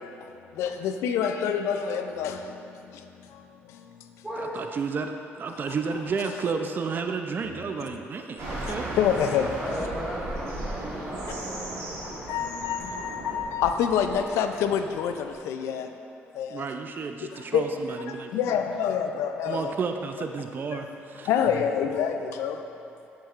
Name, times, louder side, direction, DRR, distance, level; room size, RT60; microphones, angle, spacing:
voice 1, 0.0-4.2 5.5-5.6 8.7-9.6 12.0-15.9 16.3-16.7 17.3-19.7 20.8-22.7, left 8 dB, 90° left, 7 dB, 0.4 m, -28 dB
voice 2, 4.5-8.9 16.5-18.3 19.5-21.3, right 5 dB, 45° right, 6 dB, 0.5 m, -31 dB
sound 1, 8.4-15.4, right 1 dB, 75° right, 1.5 m, -36 dB
voice 3, 9.6-12.6 18.3-18.6, equal, 10° right, -6 dB, 1.2 m, -37 dB
7.3 x 7.2 x 2.5 m, 2.9 s
cardioid pair, 85°, 5 cm